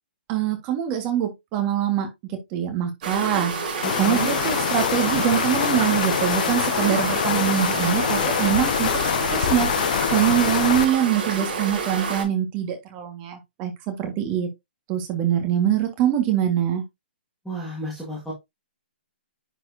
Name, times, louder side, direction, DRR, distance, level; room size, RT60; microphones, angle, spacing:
voice 1, 0.3-3.5 4.0-9.7 10.1-14.5 14.9-16.8, right 10 dB, 25° right, 1.7 m, -24 dB
sound 1, 3.0-12.2, right 4 dB, 45° right, 4.6 m, -29 dB
sound 2, 3.8-10.8, left 10 dB, 50° left, 0.5 m, -24 dB
voice 2, 3.8-4.3 17.4-18.3, right 1 dB, ahead, 1.9 m, -32 dB
9.9 x 4.4 x 2.7 m
hypercardioid pair, 160°, 6 cm